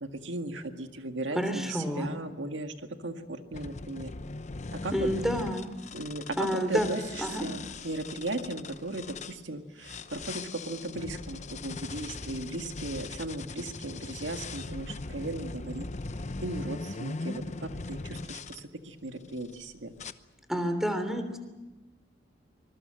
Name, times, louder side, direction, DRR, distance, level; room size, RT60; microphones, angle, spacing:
voice 1, 0.0-2.7 3.0-4.1 4.7-5.1 5.9-15.9 16.4-19.9, right 2 dB, 80° right, 6 dB, 1.9 m, -37 dB
voice 2, 1.3-2.1 4.9-5.7 6.4-6.9 7.2-7.4 20.5-21.4, equal, ahead, 8 dB, 3.2 m, -29 dB
sound 1, 3.5-9.4 9.8-18.6 19.2-19.6 20.0-20.1, left 3 dB, 40° left, 0.9 m, -40 dB
25.5 x 21.0 x 7.8 m, 1.1 s
head